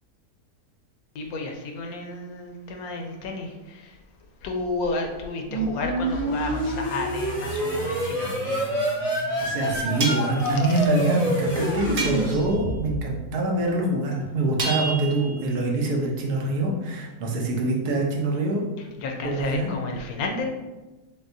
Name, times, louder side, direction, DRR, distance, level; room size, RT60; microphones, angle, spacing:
voice 1, 1.1-3.9 4.4-8.8 19.0-20.5, left 3 dB, 70° left, 2 dB, 1.0 m, -32 dB
sound 1, 5.5-13.1, right 1 dB, 35° left, 0.7 m, -27 dB
voice 2, 9.4-18.6 19.2-19.7, right 2 dB, 80° right, -1 dB, 1.3 m, -25 dB
sound 2, 10.0-10.4 12.0-12.6 14.6-15.5, right 3 dB, 60° right, 0.6 m, -30 dB
6.0 x 2.2 x 2.6 m, 1.1 s
omnidirectional pair, 1.7 m